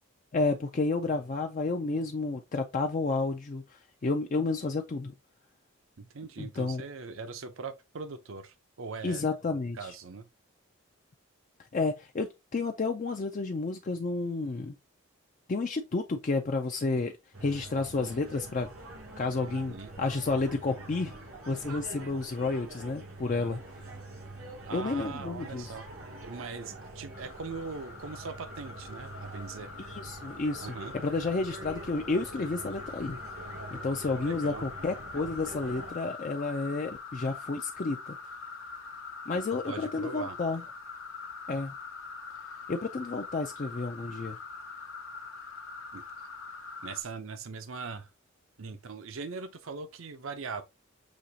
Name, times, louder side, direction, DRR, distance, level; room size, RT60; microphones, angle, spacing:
voice 1, 0.3-5.1 6.4-6.8 9.0-9.9 11.7-14.7 15.5-17.1 17.4-18.7 19.2-21.1 21.5-23.9 24.7-25.7 29.9-30.7 31.0-33.2 33.7-38.2 39.3-40.6 41.5-41.7 42.7-44.4, left 3 dB, 35° left, 0.4 m, -31 dB
voice 2, 6.0-9.2 9.8-10.3 19.5-19.9 24.7-25.9 26.2-29.7 30.6-30.9 34.2-34.7 39.6-40.4 45.9-46.0 46.8-48.1 48.6-50.6, right 4 dB, 70° right, 0.6 m, -40 dB
sound 1, 17.3-35.9, right 2 dB, 85° right, 2.5 m, -45 dB
sound 2, 27.1-47.0, left 4 dB, 65° left, 0.8 m, -44 dB
6.3 x 2.9 x 2.7 m
head